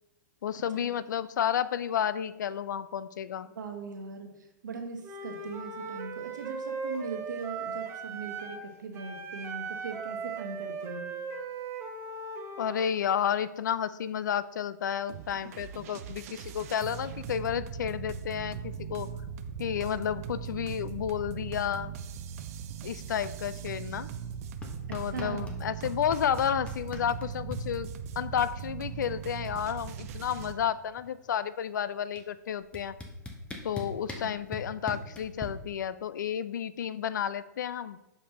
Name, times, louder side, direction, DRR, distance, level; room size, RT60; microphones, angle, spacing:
voice 1, 0.4-3.5 12.6-19.1 19.6-21.9 22.8-24.1 24.9-33.0 33.6-38.0, left 9 dB, 75° left, 16 dB, 0.3 m, -31 dB
voice 2, 3.5-11.1 24.9-25.6 34.2-34.3, right 4 dB, 75° right, 3 dB, 1.2 m, -40 dB
Wind instrument woodwind instrument, 5.0-8.7 8.9-12.8, right 4 dB, 25° right, 0.8 m, -38 dB
sound 1, 15.1-30.5, right 7 dB, 55° right, 0.5 m, -39 dB
sound 2, 24.6-25.6 25.8-27.6 28.9-29.0 29.2-29.6 29.9-31.3 32.2-32.3 32.7-35.5, left 3 dB, 10° left, 0.8 m, -40 dB
7.1 x 5.2 x 2.9 m, 0.97 s
hypercardioid pair, 115°, 10 cm